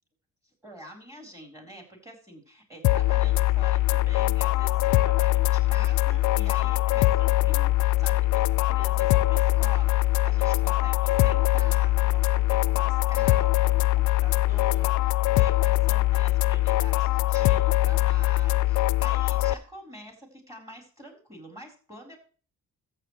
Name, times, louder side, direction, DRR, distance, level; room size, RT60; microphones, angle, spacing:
voice 1, 0.6-8.4 8.7-22.2, equal, 10° right, 2 dB, 4.1 m, -46 dB
sound 1, 2.8-19.5, left 17 dB, 75° left, 0.5 m, -22 dB
13.5 x 7.7 x 3.2 m, 0.38 s
cardioid pair, 90°, 30 cm